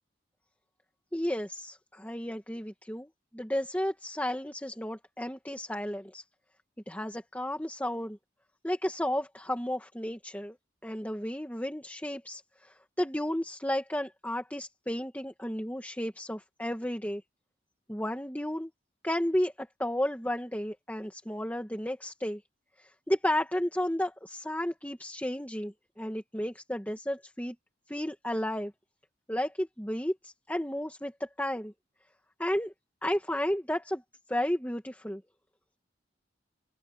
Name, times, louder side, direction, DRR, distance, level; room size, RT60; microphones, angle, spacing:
voice 1, 1.1-6.2 6.9-8.2 8.6-10.6 10.8-17.2 17.9-18.7 19.0-22.4 22.8-27.6 27.9-28.7 29.3-31.7 32.4-32.7 33.0-34.0 34.3-35.2, left 1 dB, 10° left, 2.2 m, -33 dB
open air
head